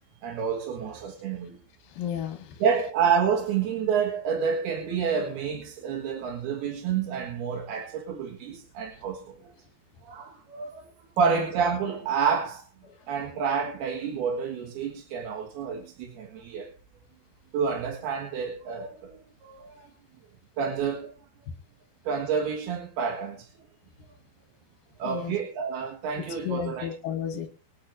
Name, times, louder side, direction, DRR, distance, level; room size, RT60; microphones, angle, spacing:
voice 1, 0.2-1.6 2.6-9.4 10.0-10.9 11.2-12.6 13.1-16.7 17.5-19.9 20.6-21.1 22.0-23.5 25.0-26.9, right 6 dB, 65° right, 3.3 m, -29 dB
voice 2, 1.9-2.6 11.2-11.4 25.0-25.3 26.4-27.5, left 9 dB, 65° left, 2.6 m, -32 dB
26.5 x 9.5 x 2.6 m
omnidirectional pair, 5.2 m